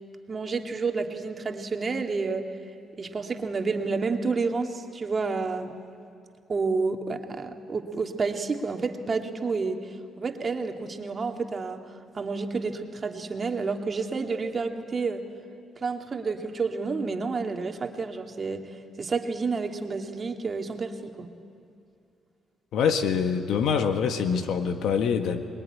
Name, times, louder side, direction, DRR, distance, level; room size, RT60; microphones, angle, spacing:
voice 1, 0.3-2.5 3.0-5.8 6.5-11.8 12.1-15.2 15.8-21.3, right 4 dB, 35° right, 5 dB, 2.1 m, -30 dB
voice 2, 22.7-25.4, left 6 dB, 75° left, 8 dB, 1.8 m, -25 dB
25.0 x 21.0 x 9.9 m, 2.5 s
cardioid pair, 90°, 0 cm